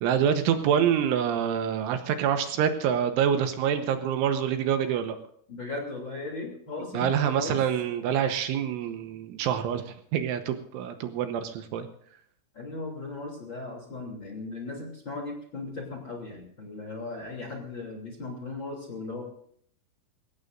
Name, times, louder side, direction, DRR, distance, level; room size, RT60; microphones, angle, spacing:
voice 1, 0.0-5.2 6.9-11.9, right 8 dB, 80° right, 7 dB, 3.3 m, -26 dB
voice 2, 5.5-7.6 12.5-19.2, left 3 dB, 30° left, 0 dB, 2.7 m, -37 dB
22.5 x 17.5 x 2.6 m, 0.64 s
omnidirectional pair, 5.9 m